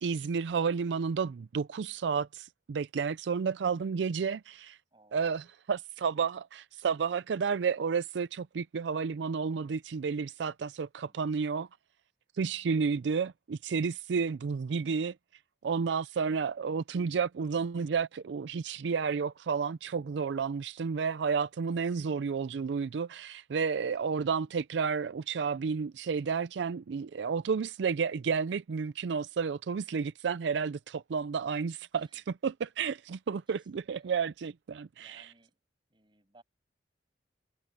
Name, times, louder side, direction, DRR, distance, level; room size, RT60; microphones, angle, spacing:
voice 1, 0.0-4.8 5.1-5.4 5.7-11.7 12.3-15.2 15.6-35.2, right 5 dB, 80° right, 0.4 m, -31 dB
voice 2, 4.9-5.4 5.9-6.4 11.1-11.3 31.9-32.2 33.5-34.2 35.0-35.6 35.9-36.4, right 2 dB, 30° right, 6.7 m, -65 dB
head